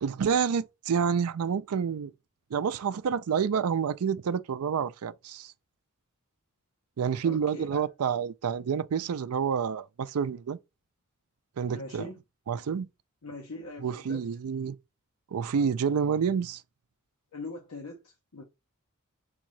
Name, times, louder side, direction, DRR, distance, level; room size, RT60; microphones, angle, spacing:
voice 1, 0.0-2.1 2.5-5.5 7.0-10.6 11.6-12.1 12.5-12.9 13.8-14.8 15.3-16.6, right 7 dB, 75° right, 0.4 m, -28 dB
voice 2, 7.2-7.9 11.7-12.2 13.2-14.3 17.3-18.4, left 2 dB, 75° left, 0.9 m, -41 dB
3.7 x 3.6 x 3.1 m
head